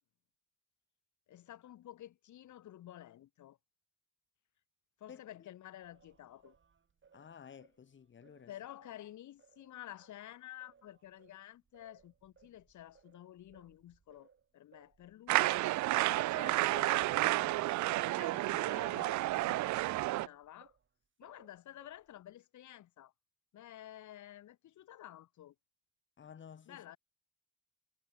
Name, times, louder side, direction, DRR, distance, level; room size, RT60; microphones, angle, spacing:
voice 1, 1.3-3.6 5.0-6.5 8.5-15.6 16.2-17.7 18.1-19.7 20.1-20.7 21.2-23.1 23.5-25.5 26.7-27.0, left 12 dB, 75° left, 2.1 m, -51 dB
Singing, 5.8-10.2 10.6-20.9 21.2-22.2, right 6 dB, 40° right, 4.1 m, -66 dB
voice 2, 7.1-8.5 26.2-26.8, left 7 dB, 40° left, 1.4 m, -53 dB
sound 1, 15.3-20.3, right 18 dB, 70° right, 0.4 m, -31 dB
cardioid pair, 90°, 30 cm